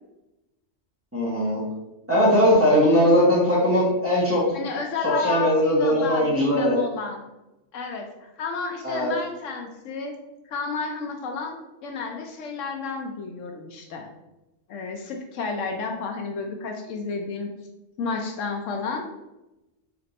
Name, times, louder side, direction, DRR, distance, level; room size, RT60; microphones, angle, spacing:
voice 1, 1.1-1.6 2.1-4.4 5.0-6.8 8.8-9.1, equal, 10° right, -8 dB, 1.1 m, -20 dB
voice 2, 4.5-7.2 7.7-10.1 10.5-11.6 11.8-14.1 14.7-17.5 18.0-19.1, left 4 dB, 75° left, 3 dB, 0.9 m, -31 dB
3.4 x 2.6 x 4.0 m, 0.97 s
omnidirectional pair, 1.3 m